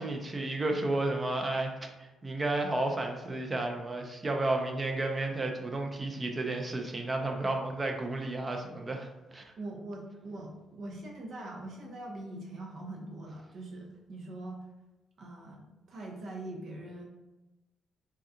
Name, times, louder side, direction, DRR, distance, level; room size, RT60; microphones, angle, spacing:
voice 1, 0.0-1.7 2.0-9.4, right 2 dB, 25° right, 3 dB, 0.5 m, -32 dB
voice 2, 9.6-14.6 15.2-17.0, right 2 dB, 65° right, -1 dB, 0.8 m, -42 dB
3.6 x 2.3 x 2.7 m, 1.0 s
cardioid pair, 90°, 0 cm